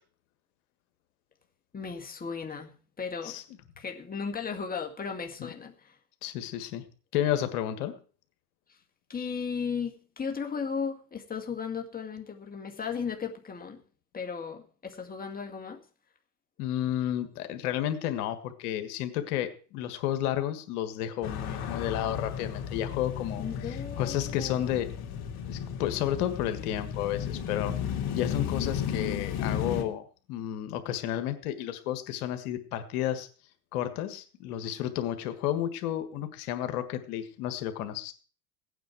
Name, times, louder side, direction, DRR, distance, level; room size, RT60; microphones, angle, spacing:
voice 1, 1.7-3.4 3.8-6.0 9.1-13.8 14.1-15.8 23.4-24.7, left 6 dB, 20° left, 2.0 m, -36 dB
voice 2, 6.2-6.9 7.1-7.9 16.6-24.9 25.5-30.0 30.3-33.3 33.7-38.1, left 11 dB, 75° left, 1.7 m, -32 dB
sound 1, 21.2-29.8, left 8 dB, 55° left, 3.0 m, -34 dB
17.0 x 9.2 x 4.7 m
supercardioid pair, 95°, 45 cm